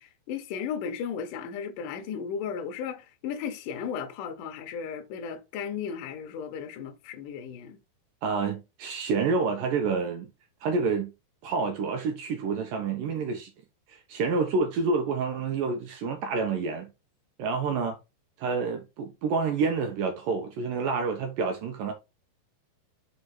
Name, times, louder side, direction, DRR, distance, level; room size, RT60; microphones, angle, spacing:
voice 1, 0.0-7.8, left 7 dB, 75° left, 2.0 m, -35 dB
voice 2, 8.2-10.3 10.6-11.1 11.4-13.5 13.9-16.9 17.4-18.0 18.4-21.9, right 4 dB, 80° right, 2.0 m, -28 dB
6.0 x 4.9 x 4.2 m
omnidirectional pair, 5.3 m